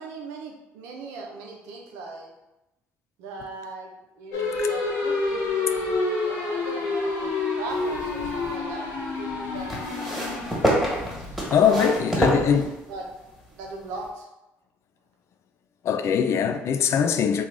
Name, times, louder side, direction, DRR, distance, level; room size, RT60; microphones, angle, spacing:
voice 1, 0.0-2.3 3.2-3.9 4.2-10.2 11.6-12.5 12.9-13.1 13.5-14.3, right 3 dB, 85° right, 0.6 m, -38 dB
sound 1, 4.3-12.6, left 3 dB, 75° left, 0.8 m, -28 dB
sound 2, 7.7-8.6 9.7-13.1 14.0-14.1, equal, ahead, 1.5 m, -27 dB
voice 2, 11.5-12.7 15.8-17.4, left 7 dB, 60° left, 0.3 m, -21 dB
3.2 x 2.4 x 3.7 m
supercardioid pair, 75°, 5 cm